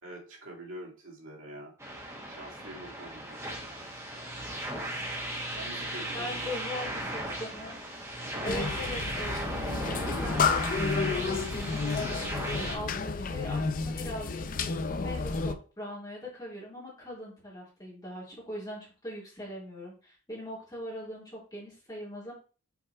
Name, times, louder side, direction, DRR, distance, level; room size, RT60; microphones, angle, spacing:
voice 1, 0.0-1.7 2.3-3.4 5.5-6.5 8.3-8.6 9.4-9.5, right 1 dB, 70° right, -3 dB, 2.3 m, -45 dB
sound 1, 1.8-12.8, right 1 dB, 15° right, 1.5 m, -36 dB
voice 2, 6.1-7.8 8.4-14.4 14.9-22.3, left 1 dB, 20° left, -5 dB, 3.0 m, -41 dB
sound 2, 8.4-15.5, left 4 dB, 40° left, 0.4 m, -31 dB
5.9 x 4.5 x 4.3 m, 0.36 s
head